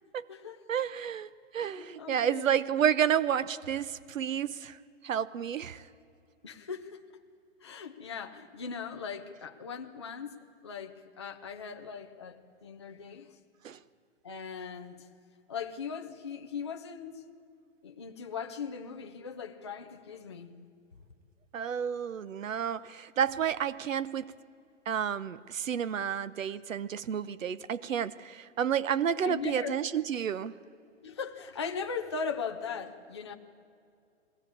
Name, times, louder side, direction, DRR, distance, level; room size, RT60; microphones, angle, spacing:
voice 1, 0.0-0.6 1.6-2.7 6.4-7.0 7.6-10.4 10.6-13.4 14.2-15.1 15.5-17.2 17.8-20.5 29.2-29.8 31.0-33.3, left 6 dB, 20° left, 3 dB, 0.6 m, -39 dB
voice 2, 0.7-4.8 5.0-5.8 13.6-13.8 21.5-24.3 24.9-30.5, right 8 dB, 90° right, 18 dB, 0.9 m, -30 dB
21.0 x 17.0 x 8.6 m, 2.4 s
hypercardioid pair, 175°, 38 cm